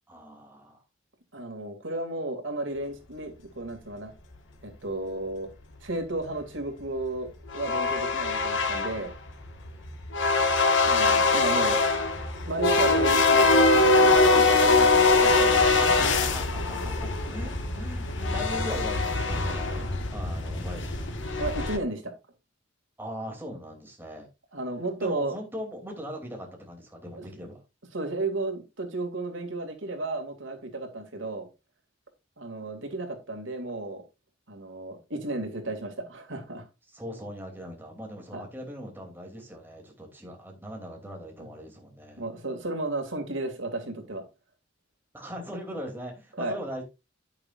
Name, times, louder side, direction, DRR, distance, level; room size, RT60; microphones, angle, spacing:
voice 1, 0.1-0.8 15.8-21.1 23.0-24.3 25.0-27.6 36.9-42.2 45.1-46.8, equal, 10° right, 3.0 m, -40 dB
voice 2, 1.3-4.1 4.6-5.5 5.8-7.3 7.5-9.1 10.8-11.8 12.4-15.6 16.0-16.1 21.4-22.1 24.5-25.3 27.1-27.2 27.9-31.5 32.4-34.0 34.5-36.7 38.3-38.5 41.4-41.5 42.2-44.2 46.4-46.6, right 2 dB, 85° right, 2.5 m, -33 dB
sound 1, 7.5-21.8, left 3 dB, 70° left, 1.8 m, -23 dB
10.5 x 9.2 x 2.5 m
head